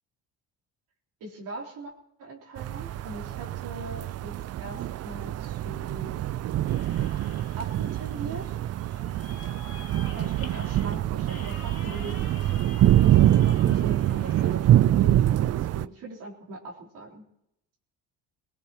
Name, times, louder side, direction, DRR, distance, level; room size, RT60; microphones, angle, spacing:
voice 1, 1.2-1.9 2.2-6.2 7.6-8.6 10.1-12.2 13.0-17.2, right 2 dB, 65° right, -4 dB, 3.8 m, -40 dB
sound 1, 2.6-15.8, right 13 dB, 45° right, 0.5 m, -25 dB
sound 2, 6.7-14.5, left 4 dB, 40° left, 2.9 m, -48 dB
20.5 x 19.0 x 3.0 m, 0.80 s
supercardioid pair, 80°, 34 cm